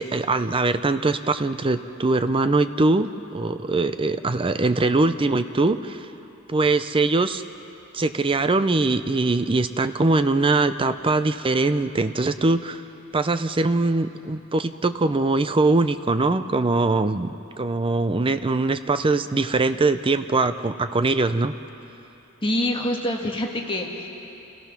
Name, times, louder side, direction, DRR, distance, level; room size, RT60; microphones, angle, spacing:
voice 1, 0.0-6.0 6.5-7.4 7.9-12.8 13.1-21.5, right 3 dB, 25° right, 11 dB, 0.5 m, -22 dB
voice 2, 22.4-24.1, left 1 dB, 25° left, 1 dB, 1.6 m, -26 dB
29.0 x 17.5 x 6.0 m, 2.9 s
head